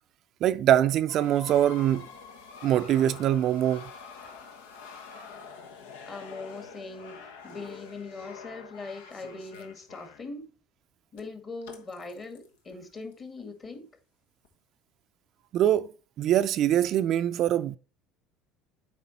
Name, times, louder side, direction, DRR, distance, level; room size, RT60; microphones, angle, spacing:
voice 1, 0.4-2.1 2.6-3.8 15.5-15.9 16.2-17.8, right 11 dB, 55° right, 0.4 m, -23 dB
sound 1, 1.1-10.3 11.2-11.3 11.6-13.7 14.4-14.5, left 6 dB, 85° left, 1.1 m, -46 dB
voice 2, 6.0-10.5 11.1-13.9, left 3 dB, 35° left, 2.0 m, -41 dB
8.0 x 5.0 x 4.1 m
supercardioid pair, 85°, 0 cm